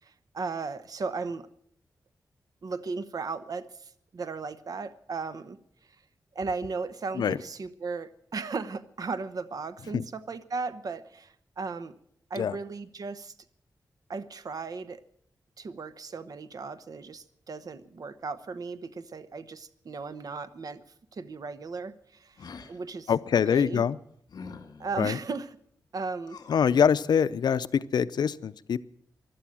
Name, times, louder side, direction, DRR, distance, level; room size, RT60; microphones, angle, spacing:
voice 1, 0.0-1.5 2.6-5.6 6.3-12.0 12.3-13.3 14.1-15.0 15.6-20.8 21.1-23.8 24.8-25.6 25.9-26.4, right 4 dB, 60° right, 12 dB, 1.0 m, -36 dB
sound 1, 22.4-22.8 24.3-25.1 26.2-26.7, left 5 dB, 75° left, 1.9 m, -45 dB
voice 2, 23.1-24.0 25.0-25.2 26.5-28.8, left 7 dB, 90° left, 14 dB, 0.6 m, -24 dB
15.5 x 12.0 x 7.6 m, 0.66 s
wide cardioid pair, 105°, 7 cm